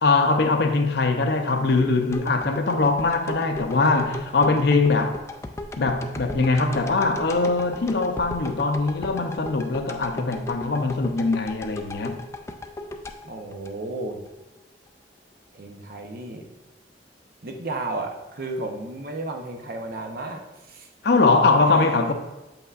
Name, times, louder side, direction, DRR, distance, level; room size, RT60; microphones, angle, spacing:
voice 1, 0.0-5.2 5.8-12.2 21.0-22.1, left 3 dB, 65° left, 0.6 m, -22 dB
sound 1, 2.1-14.3 14.7-14.8, left 2 dB, 15° left, 0.3 m, -37 dB
voice 2, 13.2-14.2 15.5-16.5 17.4-20.9 21.6-22.1, right 2 dB, 55° right, 0.7 m, -33 dB
7.2 x 5.4 x 2.4 m
head